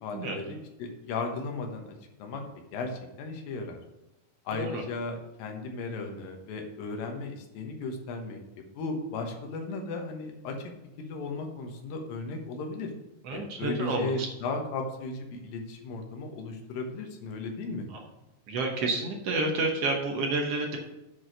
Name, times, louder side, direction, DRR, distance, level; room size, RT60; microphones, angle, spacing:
voice 1, 0.0-2.4 2.7-3.8 4.5-8.4 8.7-10.7 11.0-12.9 13.3-17.9, left 3 dB, 80° left, 3 dB, 2.9 m, -35 dB
voice 2, 4.5-4.8 13.2-14.3 18.5-20.8, right 2 dB, 65° right, 1 dB, 1.5 m, -29 dB
8.5 x 4.7 x 6.2 m, 0.98 s
omnidirectional pair, 4.0 m